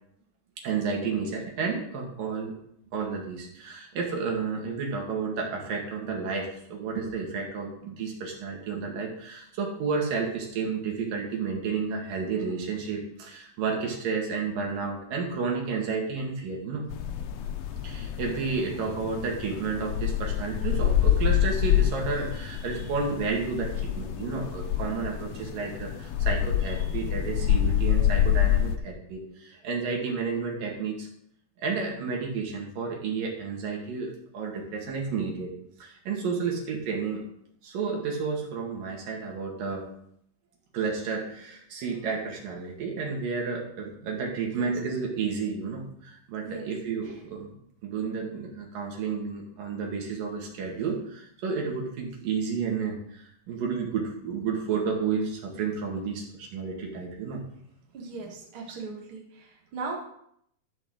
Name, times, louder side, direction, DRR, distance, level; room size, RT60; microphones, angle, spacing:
voice 1, 0.6-2.6 2.9-16.9 17.8-31.1 31.6-35.5 35.8-37.2 37.6-39.9 40.7-47.5 47.8-57.4, right 5 dB, 85° right, 0 dB, 3.7 m, -31 dB
sound 1, 16.9-28.8, left 10 dB, 70° left, 1.6 m, -27 dB
voice 2, 57.9-60.0, right 4 dB, 45° right, -1 dB, 2.6 m, -38 dB
13.0 x 5.7 x 6.5 m, 0.71 s
omnidirectional pair, 3.8 m